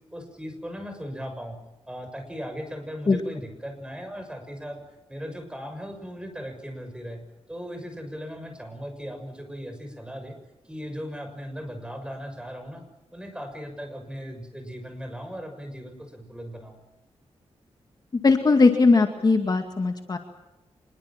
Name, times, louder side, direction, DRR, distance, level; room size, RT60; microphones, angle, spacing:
voice 1, 0.1-1.6 1.9-4.8 5.1-7.2 7.5-10.3 10.7-12.8 13.1-16.8, equal, 10° right, 7 dB, 6.5 m, -37 dB
voice 2, 18.2-20.2, left 3 dB, 35° left, 5 dB, 2.2 m, -19 dB
26.0 x 22.0 x 7.5 m, 0.96 s
wide cardioid pair, 125°, 11 cm